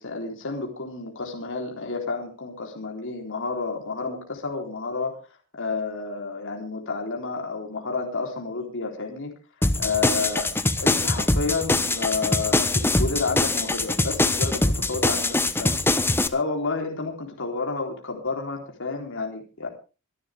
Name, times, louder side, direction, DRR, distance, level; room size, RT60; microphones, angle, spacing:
voice 1, 0.0-5.2 5.5-9.3 9.8-10.5 10.8-15.8 16.3-19.7, left 4 dB, 60° left, 1 dB, 3.7 m, -30 dB
sound 1, 9.6-16.3, left 2 dB, 10° left, 0.9 m, -23 dB
24.5 x 11.5 x 3.5 m, 0.34 s
head